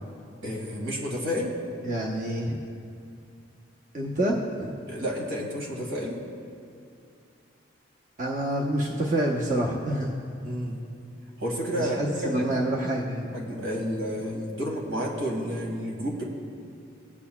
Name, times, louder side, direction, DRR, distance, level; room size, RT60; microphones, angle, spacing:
voice 1, 0.4-1.5 4.9-6.2 10.4-10.8 11.4-12.5 13.3-16.2, equal, 80° right, -2 dB, 2.2 m, -30 dB
voice 2, 1.8-2.6 3.9-4.7 8.2-10.1 11.8-13.3, right 1 dB, 40° right, -3 dB, 0.9 m, -27 dB
20.0 x 8.5 x 2.3 m, 2.5 s
head